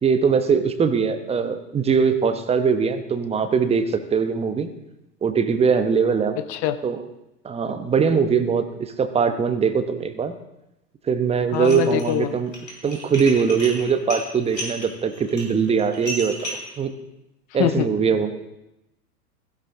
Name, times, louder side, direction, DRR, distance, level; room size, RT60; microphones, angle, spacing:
voice 1, 0.0-4.7 5.2-6.4 6.8-7.0 7.4-10.4 11.0-12.5 12.8-16.4 16.8-17.0 17.5-18.4, right 6 dB, 10° right, 9 dB, 1.0 m, -21 dB
voice 2, 6.4-6.8 11.5-12.3 17.6-17.9, left 12 dB, 20° left, 12 dB, 0.4 m, -24 dB
Dishes pots and pans, 11.5-12.1 12.5-16.7, equal, 90° left, 4.5 m, -33 dB
16.5 x 15.0 x 3.6 m, 0.91 s
figure-of-eight pair, 105°, 49 cm